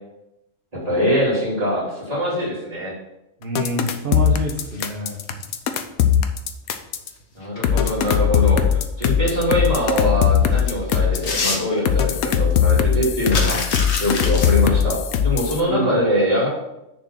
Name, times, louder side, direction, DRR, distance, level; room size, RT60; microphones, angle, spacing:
voice 1, 0.7-2.9 7.3-13.6 14.0-16.5, equal, 25° right, -7 dB, 3.2 m, -23 dB
voice 2, 3.4-5.2 15.7-16.0, right 1 dB, 40° right, -2 dB, 1.2 m, -26 dB
sound 1, 3.6-7.1 7.6-11.3 11.9-15.6, left 9 dB, 85° left, 1.2 m, -19 dB
sound 2, 4.6-5.6 7.2-7.9 8.4-8.5 9.8-9.9 10.3-12.2 12.5-12.6 12.8-14.5, left 3 dB, 55° left, 1.3 m, -27 dB
6.6 x 4.5 x 5.9 m, 0.90 s
omnidirectional pair, 1.5 m